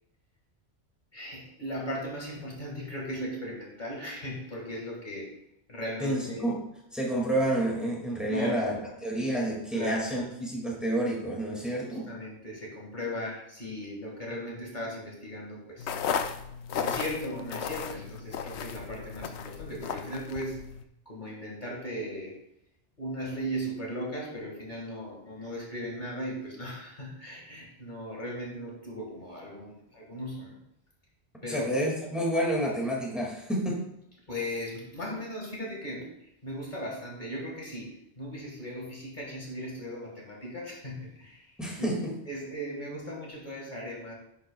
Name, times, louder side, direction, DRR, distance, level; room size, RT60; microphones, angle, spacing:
voice 1, 1.1-5.3 5.7-6.5 8.3-8.8 9.7-10.1 11.8-15.9 16.7-20.7 21.1-22.4 23.0-30.6 31.4-31.7 34.3-41.9 42.3-44.1, equal, 45° left, -2 dB, 2.0 m, -37 dB
voice 2, 6.0-6.6 6.9-12.1 31.4-33.8 41.6-42.1, right 1 dB, ahead, -3 dB, 2.1 m, -29 dB
sound 1, 15.8-20.8, left 7 dB, 75° left, 0.9 m, -35 dB
10.5 x 7.9 x 2.3 m, 0.81 s
omnidirectional pair, 1.1 m